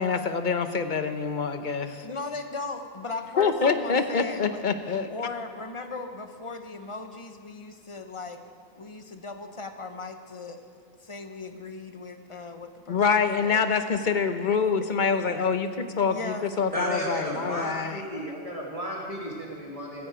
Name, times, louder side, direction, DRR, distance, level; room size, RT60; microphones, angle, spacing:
voice 1, 0.0-2.1 3.4-5.1 12.9-18.2, left 5 dB, 50° left, 8 dB, 1.0 m, -26 dB
voice 2, 2.0-4.6 5.1-8.4 8.7-10.7 11.0-13.6 14.8-15.3 16.1-16.5, left 3 dB, 30° left, 7 dB, 1.0 m, -38 dB
voice 3, 16.7-20.1, equal, 35° right, -3 dB, 2.1 m, -33 dB
16.0 x 16.0 x 5.0 m, 2.1 s
omnidirectional pair, 1.0 m